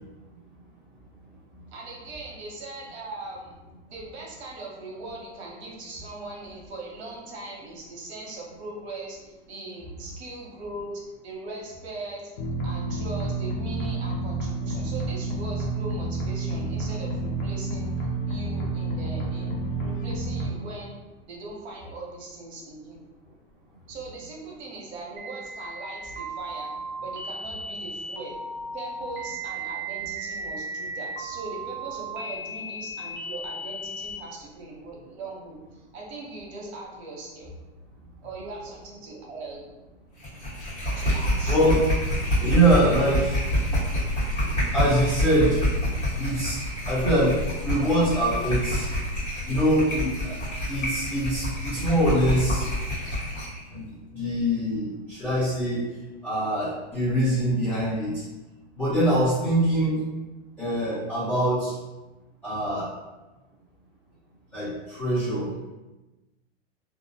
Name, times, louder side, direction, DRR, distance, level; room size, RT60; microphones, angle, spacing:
voice 1, 1.7-3.6 3.9-12.3 12.6-21.0 21.3-23.1 23.9-26.7 27.0-28.3 28.7-37.5 38.2-39.6 40.9-41.6, right 2 dB, 70° right, -2 dB, 0.8 m, -40 dB
sound 1, 12.4-20.5, right 2 dB, 55° left, 0.5 m, -29 dB
sound 2, 25.2-34.2, right 2 dB, 45° right, 0.4 m, -36 dB
sound 3, 40.2-53.6, equal, 30° left, 1.2 m, -27 dB
voice 2, 41.5-41.8 42.4-43.4 44.4-45.6 46.2-46.6 46.8-48.9 49.5-50.4 50.7-52.7 53.7-53.9 54.1-55.8 56.2-58.2 58.7-60.0 60.6-61.7 62.4-62.9 64.5-65.5, right 1 dB, 5° left, -14 dB, 0.6 m, -24 dB
2.3 x 2.0 x 2.6 m, 1.1 s
supercardioid pair, 175°, 33 cm